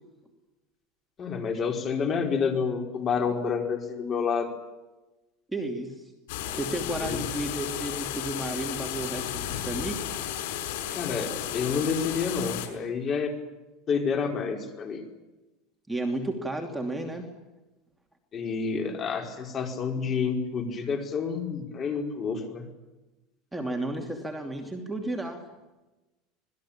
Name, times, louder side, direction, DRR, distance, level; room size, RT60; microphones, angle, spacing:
voice 1, 1.2-4.5 7.0-7.2 10.9-13.3 13.9-15.0 18.3-22.6, left 5 dB, 30° left, 4 dB, 4.8 m, -29 dB
voice 2, 5.5-6.1 6.6-10.1 15.9-17.3 23.5-25.4, right 1 dB, 5° right, 2 dB, 2.8 m, -32 dB
sound 1, 6.3-12.7, left 11 dB, 80° left, 6.5 m, -33 dB
26.5 x 20.0 x 8.9 m, 1.1 s
supercardioid pair, 155°, 0 cm